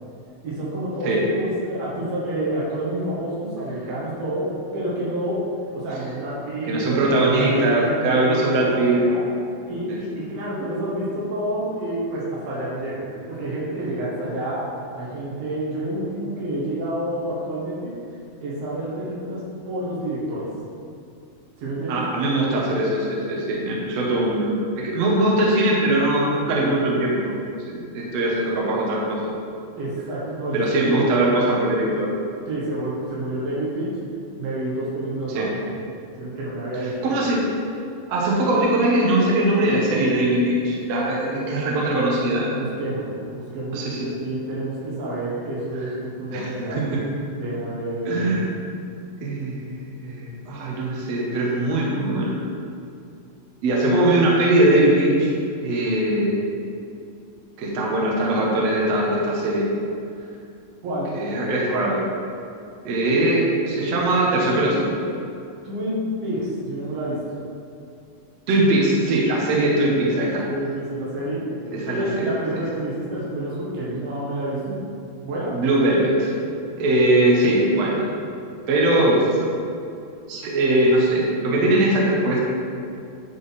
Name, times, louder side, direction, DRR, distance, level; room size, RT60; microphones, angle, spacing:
voice 1, 0.4-5.4 5.7-9.2 9.7-17.9 18.4-20.5 21.6-22.0 29.8-31.1 32.5-34.0 34.4-35.7 36.2-36.9 42.5-46.8 47.3-48.2 60.8-61.1 65.6-67.4 69.6-70.2 70.5-71.5 71.8-74.8 75.2-75.6, right 1 dB, 80° right, -7 dB, 3.5 m, -29 dB
voice 2, 6.7-9.0 21.9-24.6 24.8-27.3 27.7-29.3 30.5-32.2 35.4-35.5 37.0-37.5 38.1-42.5 43.7-44.0 46.3-47.0 48.1-48.5 49.2-49.6 50.0-52.4 53.6-55.3 55.6-56.5 57.6-59.7 61.1-62.0 62.9-64.9 68.5-70.4 71.9-72.3 75.5-76.3 76.8-78.1 78.7-79.5 80.3-82.4, right 1 dB, 65° right, -4 dB, 1.8 m, -21 dB
10.5 x 3.8 x 4.1 m, 2.5 s
omnidirectional pair, 4.1 m